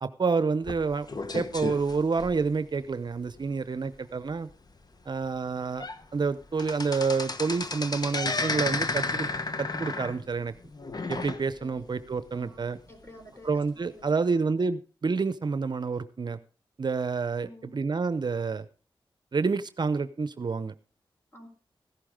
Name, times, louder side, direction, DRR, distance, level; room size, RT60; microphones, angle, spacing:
voice 1, 0.0-1.1 1.3-4.5 5.1-5.9 6.1-9.3 9.6-10.5 11.1-12.8 13.4-16.4 16.8-18.7 19.3-20.7, right 4 dB, 50° right, 14 dB, 0.7 m, -28 dB
sound 1, 0.6-2.8 3.3-3.5 3.8-3.9 4.5-4.6 5.2-5.3 5.6-6.0 6.3-11.8 12.2-12.3 13.1-13.2, left 3 dB, 45° left, 1.2 m, -32 dB
voice 2, 11.6-11.9 12.3-14.5 17.4-17.8 21.3-21.5, left 1 dB, 25° left, 5 dB, 4.2 m, -51 dB
15.0 x 11.5 x 3.7 m, 0.38 s
cardioid pair, 60°, 9 cm